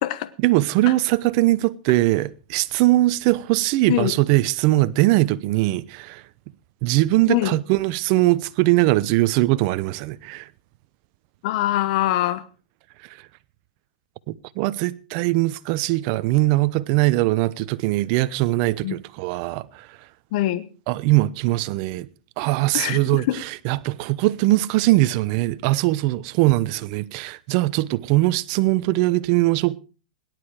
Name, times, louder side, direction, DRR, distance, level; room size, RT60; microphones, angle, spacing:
voice 1, 0.4-6.2 6.8-10.5 14.3-19.9 20.9-22.1 22.4-29.8, right 18 dB, 45° right, 0.9 m, -21 dB
voice 2, 11.4-12.4 18.8-18.9 20.3-20.7 22.7-23.4, left 14 dB, 55° left, 1.1 m, -23 dB
18.0 x 11.0 x 5.0 m
hypercardioid pair, 130°, 4 cm